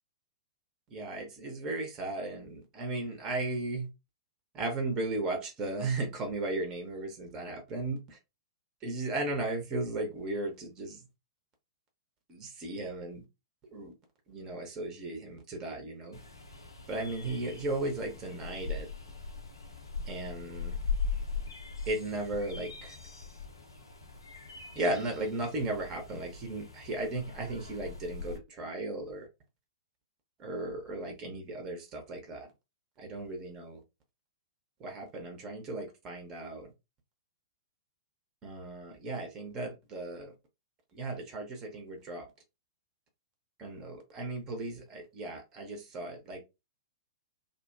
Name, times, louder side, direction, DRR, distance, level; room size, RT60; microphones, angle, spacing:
voice 1, 0.9-3.9 4.5-8.2 8.8-11.1 12.3-13.2 13.7-13.9 14.3-16.2 16.9-18.9 20.1-20.8 21.9-22.9 24.7-29.3 30.4-32.5 33.0-33.8 34.8-36.7 38.4-40.3 40.9-42.2 43.6-46.4, right 2 dB, 25° right, 0.7 m, -36 dB
sound 1, 16.1-28.4, left 5 dB, 75° left, 0.6 m, -40 dB
2.5 x 2.1 x 2.4 m
figure-of-eight pair, 105°, 2 cm